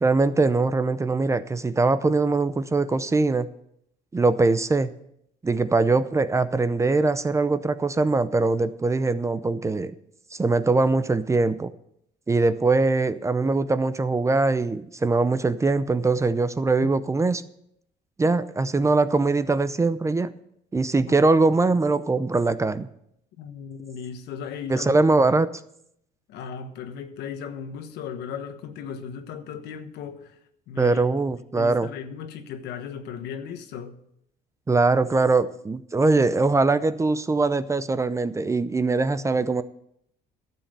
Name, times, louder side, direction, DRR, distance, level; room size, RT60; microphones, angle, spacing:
voice 1, 0.0-3.5 4.1-4.9 5.4-9.9 10.3-11.7 12.3-17.4 18.2-20.3 20.7-22.9 24.7-25.5 30.8-31.9 34.7-39.6, right 3 dB, 15° right, 0.6 m, -22 dB
voice 2, 23.4-24.9 26.3-30.4 30.7-31.0 31.5-34.0, left 7 dB, 80° left, 1.2 m, -36 dB
12.0 x 7.4 x 6.7 m
cardioid pair, 110°, 17 cm